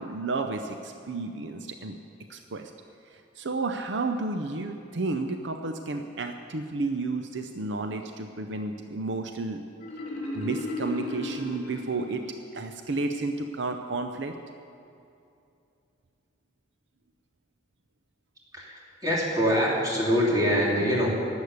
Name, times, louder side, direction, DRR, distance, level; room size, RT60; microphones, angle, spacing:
voice 1, 0.0-2.0 2.3-2.7 3.1-9.6 10.3-12.2 12.5-14.3, right 3 dB, 70° right, 6 dB, 0.7 m, -32 dB
Marimba xylophone, 9.8-12.6, left 2 dB, 40° left, 3.6 m, -35 dB
voice 2, 18.5-21.1, equal, 20° right, -5 dB, 3.0 m, -24 dB
11.5 x 8.3 x 9.6 m, 2.6 s
head